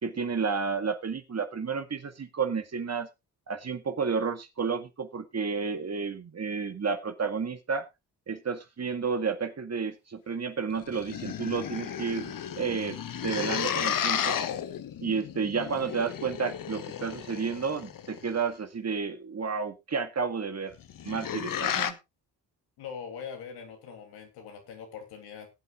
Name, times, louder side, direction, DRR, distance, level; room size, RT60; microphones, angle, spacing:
voice 1, 0.0-3.1 3.5-7.9 8.3-13.0 13.2-14.4 15.0-20.7 21.0-22.0, right 5 dB, 40° right, 8 dB, 1.9 m, -31 dB
sound 1, 10.7-18.3 20.7-21.9, left 9 dB, 60° left, 1.2 m, -33 dB
voice 2, 22.8-25.5, left 7 dB, 85° left, 3 dB, 3.0 m, -42 dB
19.5 x 8.5 x 2.5 m, 0.23 s
supercardioid pair, 55°, 38 cm